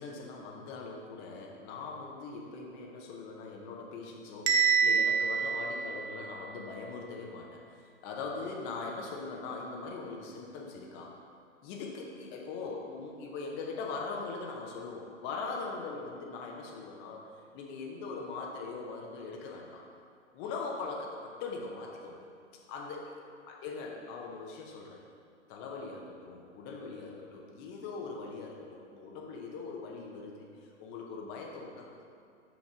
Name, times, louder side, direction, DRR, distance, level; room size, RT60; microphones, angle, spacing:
voice 1, 0.0-11.1 11.6-19.8 20.3-22.2 22.7-23.0 23.6-25.0 25.5-32.1, left 4 dB, 30° left, -1 dB, 0.8 m, -41 dB
Bell, 4.5-6.5, right 6 dB, 35° right, 0.7 m, -27 dB
5.7 x 5.2 x 5.1 m, 2.3 s
figure-of-eight pair, 110°, 38 cm